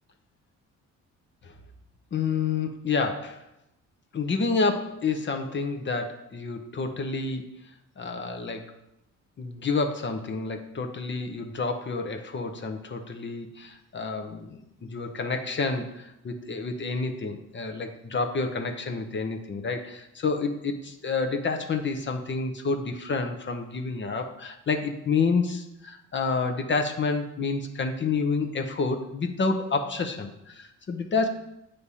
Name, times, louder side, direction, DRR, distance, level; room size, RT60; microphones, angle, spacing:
voice 1, 2.1-3.4 4.1-7.5 8.0-8.7 9.4-31.3, left 4 dB, 40° left, 5 dB, 0.8 m, -29 dB
8.4 x 3.3 x 5.5 m, 0.87 s
cardioid pair, 90°, 30 cm